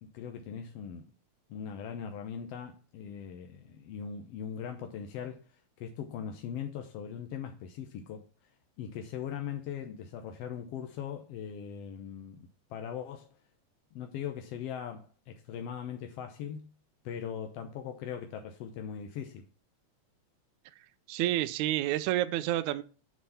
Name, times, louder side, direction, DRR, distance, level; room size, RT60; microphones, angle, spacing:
voice 1, 0.0-1.1 1.5-8.5 8.8-13.4 13.9-16.7 17.0-19.4, left 8 dB, 70° left, 1.7 m, -40 dB
voice 2, 21.1-22.8, right 14 dB, 80° right, 2.0 m, -29 dB
7.2 x 6.3 x 5.6 m
omnidirectional pair, 3.4 m